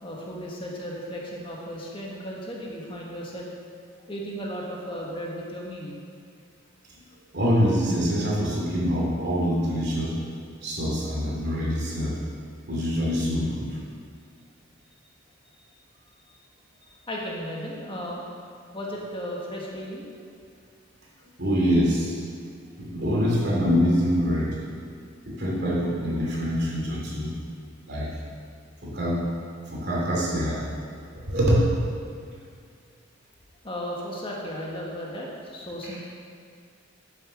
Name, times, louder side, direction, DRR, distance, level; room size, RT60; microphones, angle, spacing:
voice 1, 0.0-3.5 4.1-6.0 16.2-16.3 17.1-18.2 18.7-20.0 33.6-36.0, equal, 25° left, -3 dB, 1.4 m, -35 dB
voice 2, 7.3-10.2 10.6-12.2 12.7-13.8 21.4-22.2 22.8-24.6 25.3-27.3 27.9-28.1 28.8-29.2 29.7-30.6 31.2-31.7 35.8-36.0, equal, 55° right, -4 dB, 2.6 m, -25 dB
9.6 x 6.8 x 6.3 m, 2.3 s
head